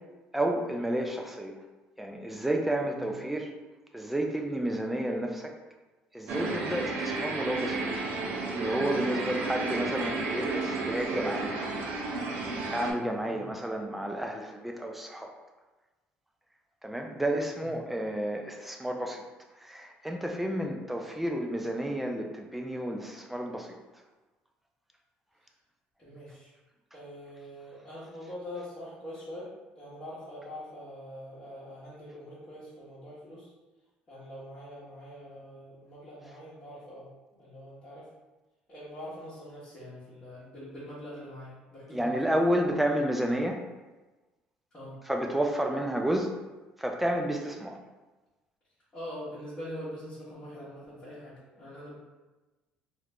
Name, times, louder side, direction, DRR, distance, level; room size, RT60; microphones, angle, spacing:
voice 1, 0.3-1.6 2.0-3.5 3.9-5.6 6.1-7.9 8.5-11.5 12.7-15.3 16.8-19.2 19.6-23.8 41.9-43.6 45.1-46.3 46.8-47.8, right 1 dB, 5° right, 2 dB, 0.3 m, -31 dB
sound 1, 6.3-12.9, right 3 dB, 60° right, 0.6 m, -32 dB
voice 2, 26.0-26.5 26.9-33.5 34.1-37.1 37.4-38.1 38.7-42.3 44.7-45.0 48.9-51.9, equal, 25° left, -11 dB, 1.1 m, -44 dB
3.3 x 2.5 x 3.2 m, 1.2 s
cardioid pair, 150°, 3 cm